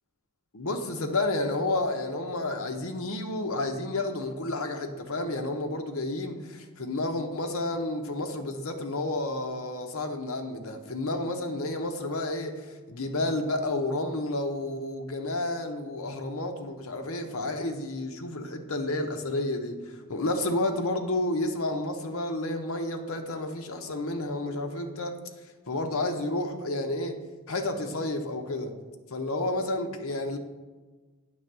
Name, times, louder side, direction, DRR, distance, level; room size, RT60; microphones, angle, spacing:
voice 1, 0.5-25.2 25.7-27.2 27.5-28.7 29.1-30.4, left 2 dB, 70° left, 5 dB, 0.8 m, -31 dB
8.9 x 3.4 x 6.6 m, 1.3 s
head